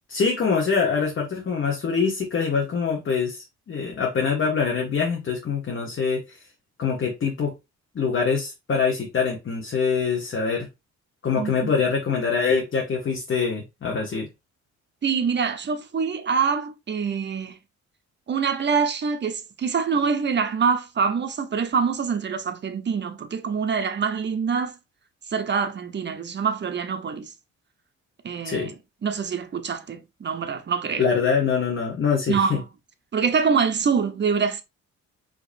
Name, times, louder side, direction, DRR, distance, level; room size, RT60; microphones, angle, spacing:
voice 1, 0.1-6.2 6.8-7.5 7.9-10.7 11.2-14.3 28.4-28.7 31.0-32.6, left 5 dB, 40° left, 1.1 m, -24 dB
voice 2, 11.4-11.7 15.0-17.6 18.3-24.7 25.3-27.3 28.2-28.8 29.0-31.1 32.3-32.6 33.1-34.6, right 6 dB, 35° right, 0.8 m, -25 dB
5.1 x 2.9 x 2.6 m
cardioid pair, 90°, 30 cm